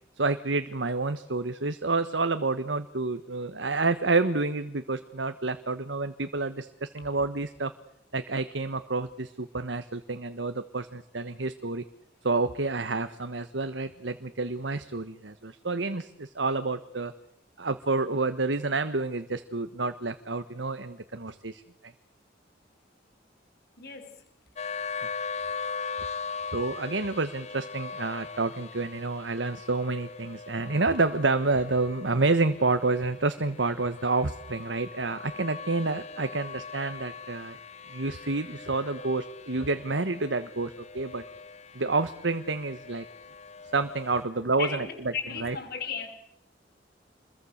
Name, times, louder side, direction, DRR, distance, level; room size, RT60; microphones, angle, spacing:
voice 1, 0.2-7.7 8.1-11.8 12.2-17.1 17.6-21.6 26.5-37.6 37.9-41.2 41.7-43.0 43.7-44.9 45.4-45.5, right 3 dB, 90° right, 10 dB, 1.4 m, -29 dB
voice 2, 23.8-24.2 44.6-46.1, left 6 dB, 55° left, 6 dB, 5.3 m, -35 dB
sound 1, 24.6-44.2, left 5 dB, 40° left, 1.0 m, -40 dB
28.0 x 22.0 x 6.6 m, 0.80 s
head